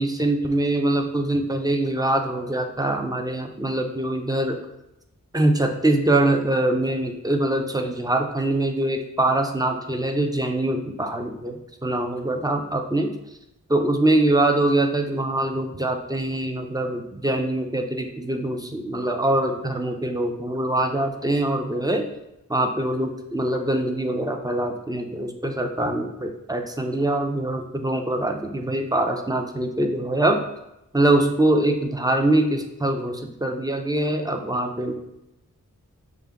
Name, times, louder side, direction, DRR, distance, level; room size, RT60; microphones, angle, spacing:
voice 1, 0.0-4.6 5.3-13.1 13.7-22.0 22.5-30.4 30.9-34.9, right 1 dB, 10° right, 4 dB, 0.5 m, -23 dB
6.3 x 2.2 x 3.5 m, 0.86 s
wide cardioid pair, 45°, 34 cm